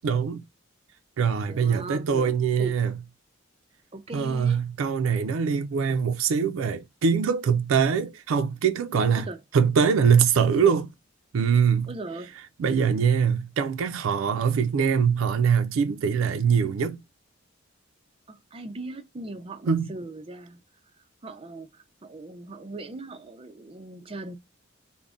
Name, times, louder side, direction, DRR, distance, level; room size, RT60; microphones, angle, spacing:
voice 1, 0.0-0.4 1.2-2.9 4.1-9.3 9.5-10.9 11.3-11.9 12.6-17.0 19.7-19.9, right 6 dB, 85° right, 0.4 m, -23 dB
voice 2, 1.5-2.3 2.6-2.8 3.9-4.6 9.2-9.4 11.9-12.3 18.3-20.6 21.2-24.4, right 2 dB, 30° right, 0.5 m, -39 dB
2.5 x 2.1 x 3.5 m
head